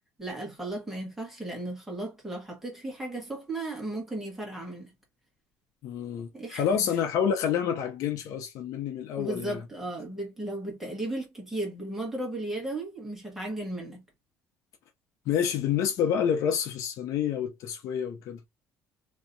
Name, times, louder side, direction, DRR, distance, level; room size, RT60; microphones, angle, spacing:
voice 1, 0.2-4.9 6.3-6.8 9.2-14.0, right 1 dB, 5° right, 1.5 m, -35 dB
voice 2, 5.8-9.6 15.3-18.4, left 8 dB, 60° left, 0.6 m, -28 dB
3.3 x 2.8 x 2.6 m
cardioid pair, 170°, 6 cm